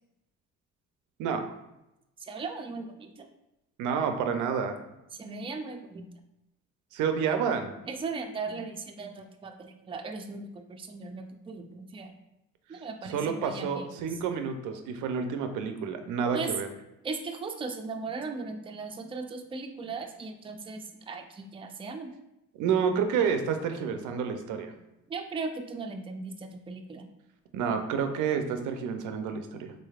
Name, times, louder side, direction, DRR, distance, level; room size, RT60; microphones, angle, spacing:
voice 1, 1.2-1.5 3.8-4.8 6.9-7.7 12.7-16.7 22.6-24.7 27.5-29.7, right 6 dB, 90° right, 7 dB, 0.5 m, -29 dB
voice 2, 2.2-3.3 5.2-6.1 7.9-12.1 12.7-13.9 16.3-16.5 17.0-22.1 25.1-27.1, right 4 dB, 20° right, 4 dB, 0.4 m, -38 dB
3.8 x 3.3 x 2.3 m, 0.90 s
cardioid pair, 90°, 30 cm